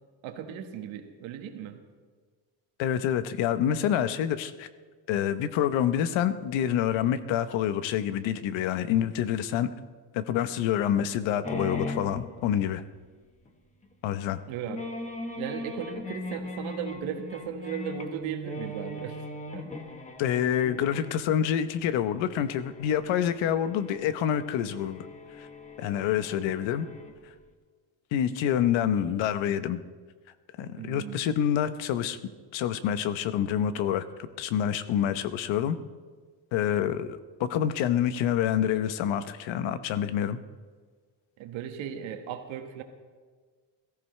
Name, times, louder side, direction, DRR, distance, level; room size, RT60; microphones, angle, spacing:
voice 1, 0.2-1.8 14.5-14.8 15.4-19.7 30.8-31.3 41.4-42.8, right 8 dB, 85° right, 6 dB, 1.6 m, -37 dB
voice 2, 2.8-4.7 5.1-9.7 10.1-12.8 14.0-14.4 20.2-25.1 25.4-25.5 25.8-26.9 28.1-29.8 30.6-32.2 32.5-34.0 34.4-35.8 36.5-40.4, left 10 dB, 75° left, 12 dB, 0.9 m, -27 dB
sound 1, 11.4-13.0 13.4-13.5 13.8-13.9 14.6-27.3, left 2 dB, 15° left, 1.4 m, -39 dB
21.0 x 14.5 x 3.3 m, 1.5 s
cardioid pair, 150°, 46 cm